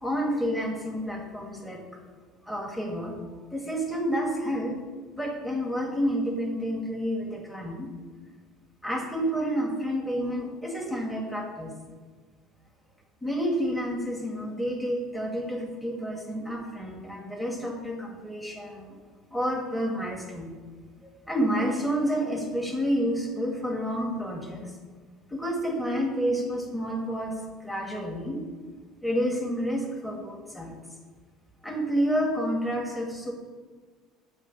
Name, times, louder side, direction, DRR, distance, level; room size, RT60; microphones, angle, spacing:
voice 1, 0.0-1.8 2.4-3.2 3.5-4.8 5.2-7.9 8.8-11.7 13.2-18.9 19.3-20.5 21.3-24.7 25.3-27.3 27.6-28.4 29.0-30.8 31.6-33.3, equal, ahead, -1 dB, 1.3 m, -29 dB
6.6 x 3.2 x 5.2 m, 1.4 s
hypercardioid pair, 65°, 0 cm